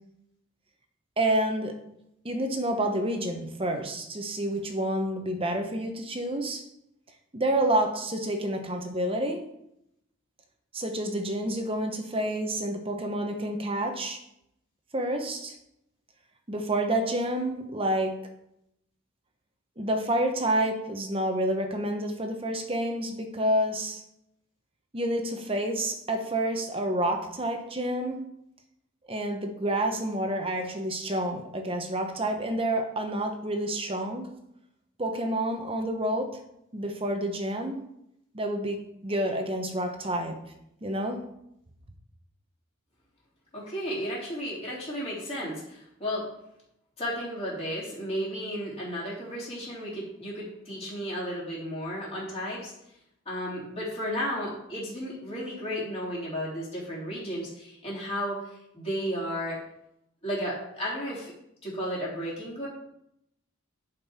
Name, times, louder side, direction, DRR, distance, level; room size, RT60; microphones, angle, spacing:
voice 1, 1.2-1.7 2.2-6.6 7.3-9.4 10.7-14.2 14.9-15.5 16.5-18.2 19.8-24.0 24.9-28.2 29.1-34.3 35.0-36.3 36.7-37.8 38.3-40.4 40.8-41.2, right 1 dB, 25° right, 5 dB, 1.0 m, -29 dB
voice 2, 43.5-46.3 47.0-52.7 53.3-59.6 60.2-61.3 61.6-62.7, equal, 30° left, -7 dB, 3.5 m, -33 dB
10.5 x 5.3 x 4.3 m, 0.80 s
head